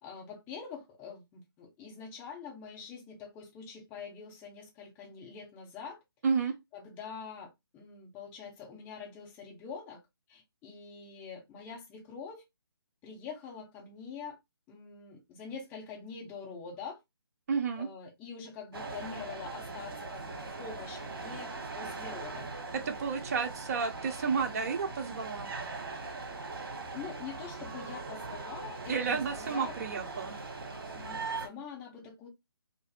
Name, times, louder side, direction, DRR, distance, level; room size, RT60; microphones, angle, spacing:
voice 1, 0.0-6.0 6.7-10.0 10.3-12.4 13.0-14.4 14.7-17.0 17.8-22.5 26.9-29.8 30.9-32.3, left 6 dB, 15° left, 0.7 m, -45 dB
voice 2, 17.5-17.9 22.7-25.5 28.9-30.3, right 5 dB, 40° right, 0.6 m, -31 dB
sound 1, 18.7-31.5, right 3 dB, 60° right, 1.0 m, -41 dB
2.5 x 2.5 x 2.4 m
figure-of-eight pair, 150°, 13 cm